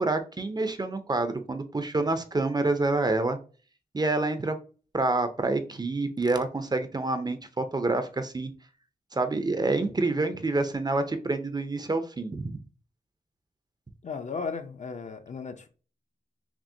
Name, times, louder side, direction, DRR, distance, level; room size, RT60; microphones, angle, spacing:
voice 1, 0.0-3.4 3.9-4.6 4.9-8.5 9.1-12.6, right 2 dB, 25° right, 0.5 m, -27 dB
voice 2, 14.0-15.7, left 5 dB, 45° left, 0.6 m, -35 dB
5.9 x 2.1 x 2.6 m
wide cardioid pair, 105°, 16 cm